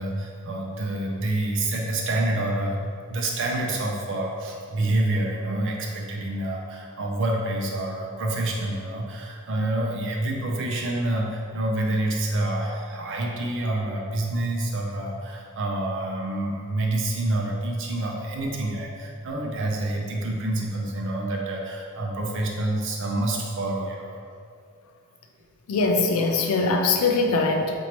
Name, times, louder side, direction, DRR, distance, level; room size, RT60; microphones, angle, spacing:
voice 1, 0.0-2.8 3.1-24.2, right 1 dB, 60° right, 0 dB, 0.6 m, -27 dB
voice 2, 25.7-27.7, left 3 dB, 75° left, 4 dB, 0.4 m, -22 dB
4.4 x 2.7 x 2.9 m, 2.3 s
head